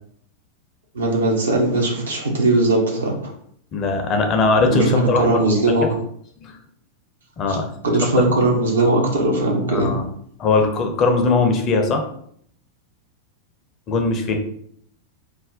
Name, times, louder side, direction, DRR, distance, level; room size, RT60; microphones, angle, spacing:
voice 1, 0.9-3.3 4.7-5.9 7.5-7.6 7.8-9.9, right 2 dB, 70° right, 0 dB, 0.7 m, -19 dB
voice 2, 3.7-5.9 6.4-6.6 7.4-7.7 9.7-10.0 10.4-12.0 13.9-14.4, left 3 dB, 30° left, 4 dB, 0.5 m, -20 dB
2.4 x 2.1 x 3.6 m, 0.65 s
figure-of-eight pair, 90°, 0 cm